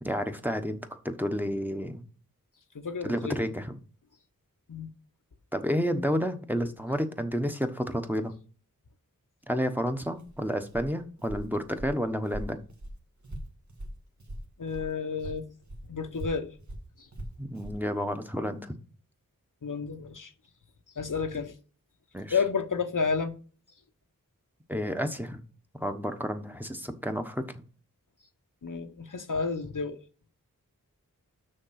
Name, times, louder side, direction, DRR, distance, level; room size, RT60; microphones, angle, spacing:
voice 1, 0.0-2.0 3.0-3.8 5.5-8.3 9.5-12.6 17.4-18.7 22.1-22.3 24.7-25.4 25.7-27.4, equal, 5° right, 1.1 m, -30 dB
voice 2, 2.7-3.4 4.7-4.9 14.6-15.5 15.9-16.5 19.6-20.3 21.0-21.5 22.3-23.3 28.6-30.0, left 5 dB, 65° left, 0.9 m, -31 dB
Walk footsteps, 10.1-14.9 15.2-17.8, right 1 dB, 55° right, 1.6 m, -41 dB
6.5 x 5.9 x 5.8 m
wide cardioid pair, 45°, 34 cm